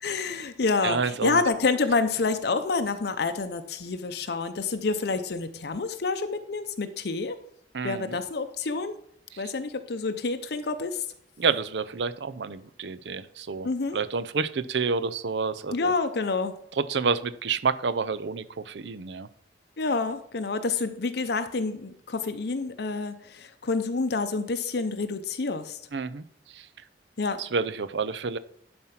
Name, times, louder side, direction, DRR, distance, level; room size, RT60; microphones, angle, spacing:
voice 1, 0.0-7.4 7.8-9.0 9.4-11.0 13.6-14.0 15.7-16.5 19.8-25.8 27.2-27.4, left 4 dB, 65° left, 8 dB, 0.6 m, -28 dB
voice 2, 0.8-1.4 7.7-8.2 11.4-15.9 16.8-19.3 25.9-26.2 27.4-28.4, right 5 dB, 75° right, 14 dB, 0.6 m, -29 dB
11.0 x 4.3 x 5.8 m, 0.66 s
head